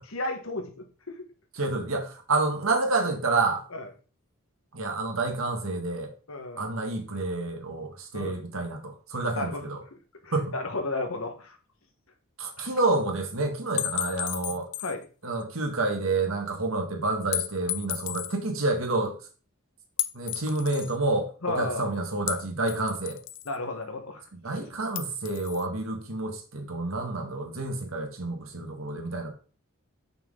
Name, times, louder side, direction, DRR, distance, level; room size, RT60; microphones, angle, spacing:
voice 1, 0.1-1.3 3.7-3.9 6.3-6.6 8.1-8.4 9.4-9.6 10.2-11.6 12.6-12.7 14.5-14.6 14.8-15.0 21.4-21.9 23.4-24.2, left 2 dB, 80° left, 1.4 m, -33 dB
voice 2, 1.6-3.6 4.7-6.1 6.6-9.8 10.3-10.5 12.4-14.7 15.2-19.1 20.1-23.2 24.4-29.3, right 2 dB, 75° right, 1.7 m, -29 dB
sound 1, 13.8-15.0 15.4-15.5 17.3-18.3 20.0-20.9 22.3-23.6 24.9-25.6, left 14 dB, 60° left, 0.5 m, -33 dB
6.1 x 5.8 x 3.7 m
head